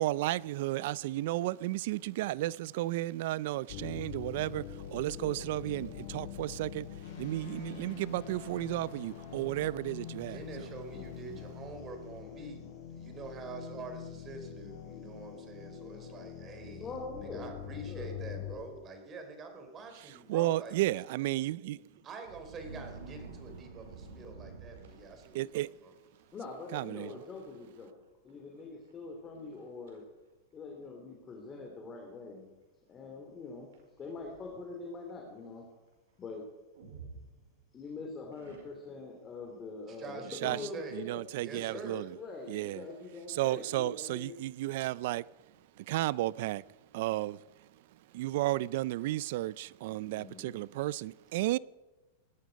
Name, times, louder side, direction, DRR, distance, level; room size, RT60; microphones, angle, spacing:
voice 1, 0.0-10.7 20.3-21.8 25.3-25.7 26.7-27.1 40.3-40.6 40.9-42.2 42.5-42.9 43.3-45.3 45.8-46.6 46.9-47.4 48.1-51.6, right 16 dB, 60° right, 0.5 m, -33 dB
sound 1, 3.7-18.5, left 8 dB, 60° left, 6.1 m, -44 dB
voice 2, 5.1-5.5 10.9-11.4 15.9-16.0 16.8-18.8 26.3-27.9 28.2-30.0 30.5-32.5 32.9-33.7 34.0-35.7 36.2-36.5 37.7-41.2 41.7-44.4 50.0-50.6, left 3 dB, 20° left, 3.1 m, -44 dB
voice 3, 10.2-20.9 22.0-25.9 39.9-41.0 41.3-42.0, right 3 dB, 25° right, 3.6 m, -46 dB
sound 2, 22.2-25.5 26.2-26.4 26.7-27.2 27.4-27.5 28.3-28.4 28.9-29.0 29.5-30.0 30.8-30.9 33.7-34.7 36.8-37.8 38.3-39.1, right 4 dB, 75° right, 5.3 m, -50 dB
19.0 x 13.0 x 5.3 m
supercardioid pair, 135°, 0 cm